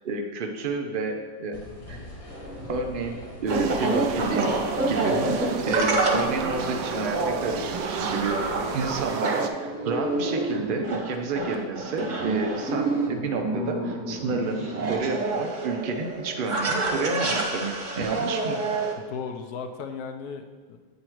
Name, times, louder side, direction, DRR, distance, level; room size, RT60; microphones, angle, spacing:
voice 1, 0.0-1.6 1.9-2.0 2.7-4.5 4.9-18.6, right 3 dB, 65° right, 3 dB, 0.5 m, -30 dB
sound 1, 1.5-9.1, left 2 dB, 55° left, 1.6 m, -43 dB
sound 2, 2.3-18.9, right 2 dB, 30° right, 1.0 m, -28 dB
sound 3, 3.5-9.5, right 7 dB, 85° right, 1.2 m, -33 dB
voice 2, 5.0-5.4 19.0-20.8, left 5 dB, 70° left, 6 dB, 1.1 m, -36 dB
8.7 x 4.0 x 4.5 m, 1.5 s
omnidirectional pair, 1.8 m